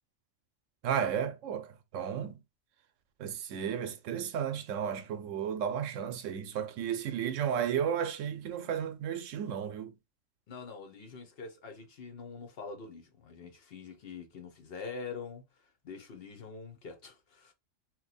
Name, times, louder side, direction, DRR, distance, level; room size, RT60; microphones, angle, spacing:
voice 1, 0.8-2.4 3.2-9.9, right 8 dB, 80° right, 1.0 m, -33 dB
voice 2, 10.5-17.5, left 5 dB, 55° left, 0.8 m, -45 dB
2.9 x 2.2 x 4.0 m
omnidirectional pair, 1.3 m